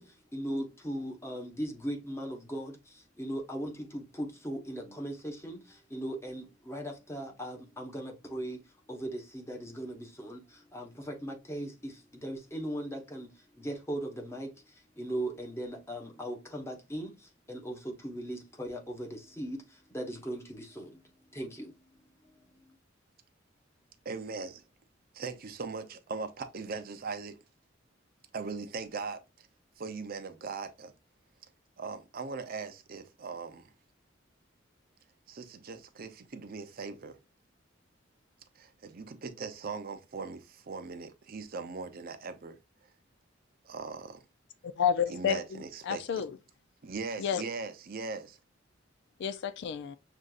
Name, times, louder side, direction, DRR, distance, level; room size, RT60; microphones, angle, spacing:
voice 1, 0.0-8.6 8.9-13.3 13.6-21.0 21.3-21.8 22.2-22.4, right 1 dB, 15° left, 1.0 m, -39 dB
voice 2, 24.0-24.6 25.1-27.4 28.3-29.5 29.8-30.9 31.8-33.7 35.3-37.2 38.6-42.6 43.6-44.2 45.1-46.2 46.8-48.4, right 4 dB, 50° right, 0.6 m, -40 dB
voice 3, 44.8-45.4 45.9-46.3 47.2-47.4 49.2-50.0, left 8 dB, 65° left, 0.3 m, -29 dB
6.4 x 2.5 x 2.3 m
head